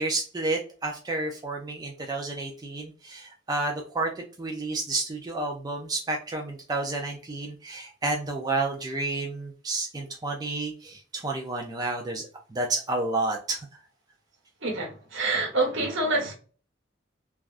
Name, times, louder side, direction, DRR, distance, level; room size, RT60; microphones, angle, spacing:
voice 1, 0.0-13.6, right 2 dB, 20° right, 1 dB, 0.4 m, -30 dB
voice 2, 14.6-16.3, right 2 dB, 90° right, 0 dB, 1.2 m, -27 dB
3.3 x 2.3 x 2.4 m, 0.39 s
head